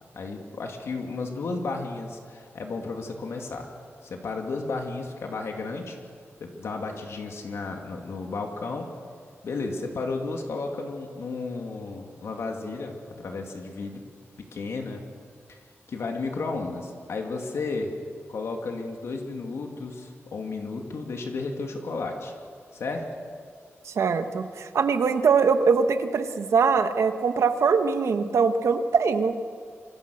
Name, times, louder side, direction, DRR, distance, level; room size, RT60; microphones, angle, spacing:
voice 1, 0.2-3.7 4.0-6.0 6.4-8.9 9.4-14.0 14.4-15.0 15.5-15.6 15.9-17.9 18.3-22.3 22.7-23.0, left 3 dB, 70° left, 2 dB, 2.6 m, -33 dB
voice 2, 23.8-29.4, right 5 dB, 85° right, 7 dB, 1.5 m, -22 dB
26.0 x 25.5 x 6.5 m, 2.1 s
wide cardioid pair, 165°, 5 cm